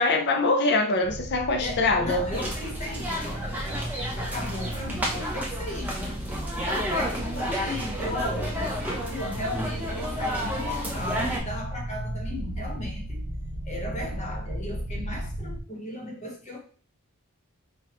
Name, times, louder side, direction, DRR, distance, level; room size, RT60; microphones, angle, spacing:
voice 1, 0.0-2.2, left 2 dB, 50° left, 0.6 m, -23 dB
sound 1, 1.0-15.6, right 1 dB, 50° right, 0.9 m, -35 dB
voice 2, 1.6-3.6 4.2-6.2 6.6-13.2 13.6-16.6, left 1 dB, 30° left, 1.1 m, -36 dB
sound 2, 2.3-11.4, equal, 10° right, 0.7 m, -32 dB
4.8 x 2.3 x 3.0 m
head